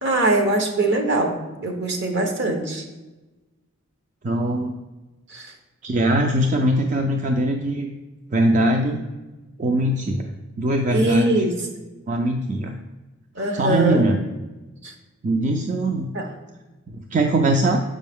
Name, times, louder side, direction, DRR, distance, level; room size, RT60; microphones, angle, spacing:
voice 1, 0.0-2.8 5.3-5.5 10.9-11.6 13.3-14.1 14.8-14.9 16.1-16.3, right 2 dB, 60° right, 4 dB, 1.0 m, -22 dB
voice 2, 4.2-4.8 5.8-7.9 8.3-9.0 9.6-10.3 10.6-11.4 12.1-12.8 13.5-14.2 15.2-16.3 16.9-17.8, right 1 dB, 35° right, 3 dB, 0.4 m, -21 dB
6.7 x 5.3 x 3.5 m, 1.1 s
head